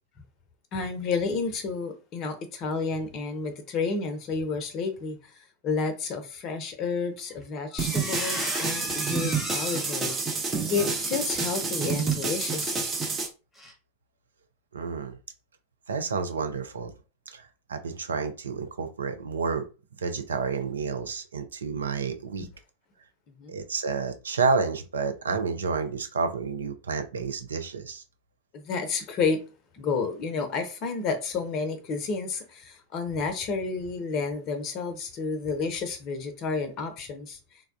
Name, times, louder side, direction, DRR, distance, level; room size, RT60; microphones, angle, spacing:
voice 1, 0.7-5.4 5.6-10.4 10.7-12.9 22.4-22.5 23.4-23.6 28.5-29.4 29.7-37.6, left 4 dB, 35° left, 0.6 m, -31 dB
Squeak, 7.2-7.4 7.7-12.7 13.0-13.2 13.6-13.7, left 1 dB, 5° left, 1.0 m, -37 dB
sound 1, 7.8-13.3, right 4 dB, 20° right, 0.7 m, -29 dB
voice 2, 14.7-15.2 15.9-16.9 17.3-19.7 20.0-22.5 23.5-28.0, right 5 dB, 70° right, 0.4 m, -30 dB
3.3 x 2.2 x 2.4 m
figure-of-eight pair, 90°, 0 cm